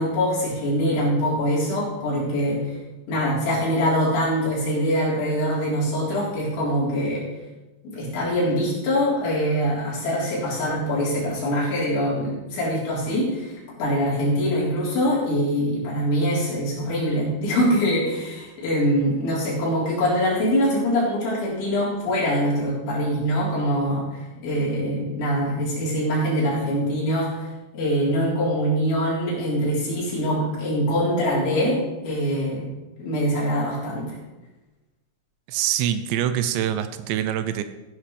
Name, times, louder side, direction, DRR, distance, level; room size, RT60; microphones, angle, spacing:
voice 1, 0.0-2.8 3.1-7.2 7.8-27.5 27.7-32.7 33.0-34.1, equal, 70° left, -7 dB, 6.2 m, -23 dB
voice 2, 35.5-37.6, right 10 dB, 80° right, 10 dB, 2.6 m, -24 dB
15.5 x 10.0 x 3.3 m, 1.1 s
omnidirectional pair, 5.5 m